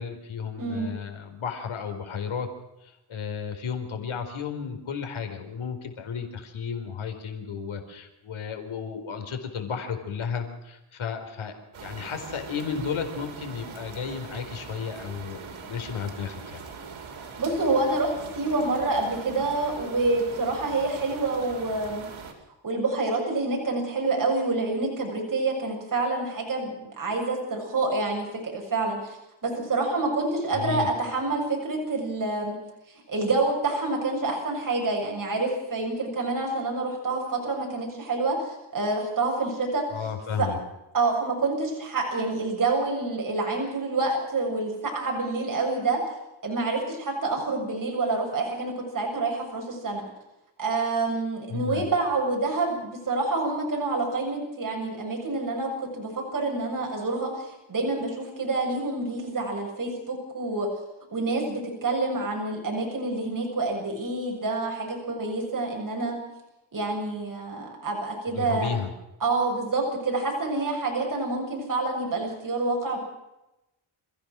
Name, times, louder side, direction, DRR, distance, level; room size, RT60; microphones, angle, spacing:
voice 1, 0.0-2.5 2.8-16.6 30.5-30.9 39.9-40.6 51.5-51.9 68.3-68.9, left 6 dB, 75° left, 6 dB, 4.4 m, -33 dB
voice 2, 0.6-1.0 17.4-22.0 22.6-29.2 29.4-32.6 33.1-39.8 40.4-40.5 40.9-46.0 46.4-50.0 50.6-60.7 61.1-66.2 66.7-68.7 69.2-73.0, right 3 dB, 40° right, 0 dB, 7.2 m, -27 dB
sound 1, 11.7-22.3, right 5 dB, 70° right, 4.9 m, -42 dB
27.5 x 15.5 x 6.3 m, 0.92 s
cardioid pair, 100°, 49 cm